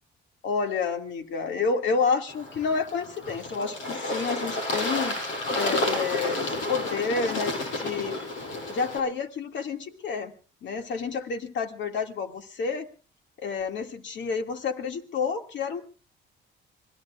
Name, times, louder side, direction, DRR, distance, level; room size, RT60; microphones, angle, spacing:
voice 1, 0.4-5.1 5.5-8.2 8.7-10.3 10.6-12.9 13.4-15.8, left 5 dB, 65° left, 5 dB, 2.2 m, -29 dB
Bird / Water, 2.3-9.0, left 2 dB, 85° left, 6.4 m, -30 dB
27.0 x 20.5 x 2.4 m, 0.37 s
cardioid pair, 90°, 20 cm